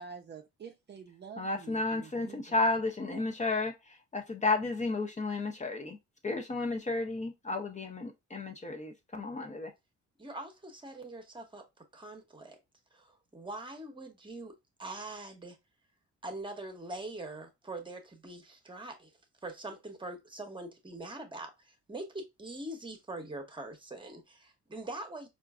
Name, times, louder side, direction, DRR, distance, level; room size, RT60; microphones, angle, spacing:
voice 1, 0.0-2.7 3.1-3.3, right 6 dB, 35° right, 0.5 m, -48 dB
voice 2, 1.4-6.0 6.2-9.7, left 3 dB, 25° left, 0.7 m, -32 dB
voice 3, 10.2-11.7 11.9-12.6 12.9-15.6 16.2-19.1 19.4-25.3, right 2 dB, 15° right, 1.0 m, -43 dB
4.4 x 2.5 x 2.3 m
cardioid pair, 90°, 30 cm